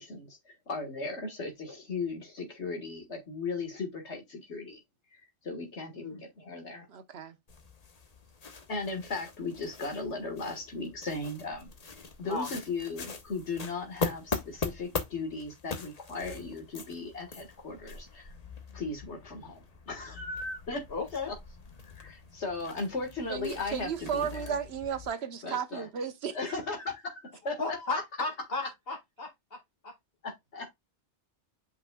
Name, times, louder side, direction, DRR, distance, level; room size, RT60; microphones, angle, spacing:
voice 1, 0.0-4.8 5.1-6.9 8.7-11.7 12.2-18.3 18.7-19.6 19.9-20.8 21.9-24.5 25.4-25.9 26.3-27.6 27.9-28.0 28.6-28.7 30.2-30.7, left 3 dB, 80° left, 1.9 m, -37 dB
voice 2, 6.9-7.4 23.3-26.4, right 7 dB, 65° right, 1.2 m, -34 dB
sound 1, 7.5-25.1, left 4 dB, 40° left, 1.0 m, -41 dB
voice 3, 20.9-21.3 27.4-29.9, left 3 dB, 60° left, 2.0 m, -35 dB
7.8 x 5.4 x 2.2 m
omnidirectional pair, 1.1 m